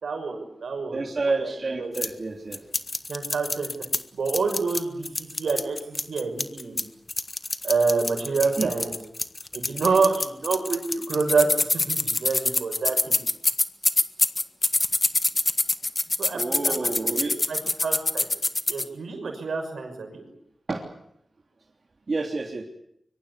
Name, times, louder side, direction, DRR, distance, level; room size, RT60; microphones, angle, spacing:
voice 1, 0.0-1.0 1.2-1.9 3.1-3.7 4.1-6.9 7.6-9.0 9.5-13.2 16.2-17.2 17.5-18.3 18.7-20.2, right 4 dB, 85° right, 5 dB, 6.0 m, -27 dB
voice 2, 0.9-2.6 8.4-8.7 16.3-17.4 20.7-20.8 22.1-22.6, right 3 dB, 55° right, 1 dB, 3.2 m, -29 dB
sound 1, 1.9-2.1 2.5-4.0 4.3-6.8 7.1-18.8, left 2 dB, 40° left, 1.6 m, -25 dB
24.5 x 23.5 x 8.3 m, 0.74 s
cardioid pair, 40°, 0 cm